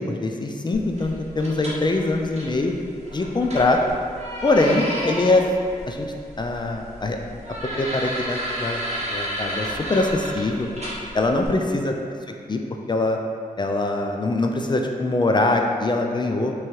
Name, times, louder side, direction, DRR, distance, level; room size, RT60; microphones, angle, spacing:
voice 1, 0.0-2.7 3.1-3.8 4.4-5.4 5.9-6.1 6.4-7.4 7.8-8.8 9.1-10.7 11.1-11.9 12.5-12.6 12.9-13.2 13.6-16.5, left 2 dB, 30° left, 3 dB, 0.3 m, -23 dB
sound 1, 0.7-11.5, equal, 45° right, 0.9 m, -33 dB
3.3 x 3.1 x 3.1 m, 2.3 s
cardioid pair, 50°, 15 cm